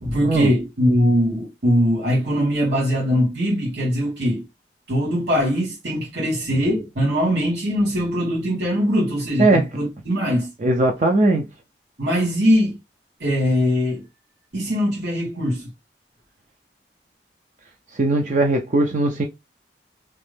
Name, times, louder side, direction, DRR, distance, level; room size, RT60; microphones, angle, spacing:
voice 1, 0.0-4.5 4.9-10.5 12.0-12.8 13.2-14.0 14.5-15.7, equal, 80° right, 1.6 m, -21 dB
voice 2, 10.6-11.5 18.0-19.2, right 2 dB, 45° right, 0.4 m, -19 dB
3.1 x 2.6 x 3.3 m
head